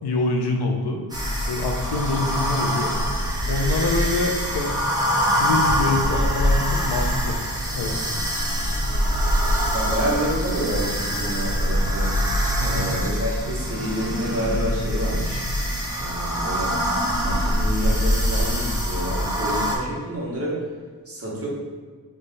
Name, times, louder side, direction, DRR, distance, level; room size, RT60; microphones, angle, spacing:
voice 1, 0.0-1.0 1.5-2.9 3.5-4.8 5.4-7.4 7.8-7.9 12.6-12.9, left 3 dB, 90° left, 2 dB, 0.7 m, -25 dB
sound 1, 1.1-19.8, equal, 10° right, 0.7 m, -24 dB
voice 2, 9.7-12.1 12.6-15.4 15.9-16.7 17.2-20.6 21.0-21.5, equal, 35° right, -5 dB, 1.2 m, -28 dB
3.3 x 3.2 x 3.9 m, 1.5 s
wide cardioid pair, 140°, 39 cm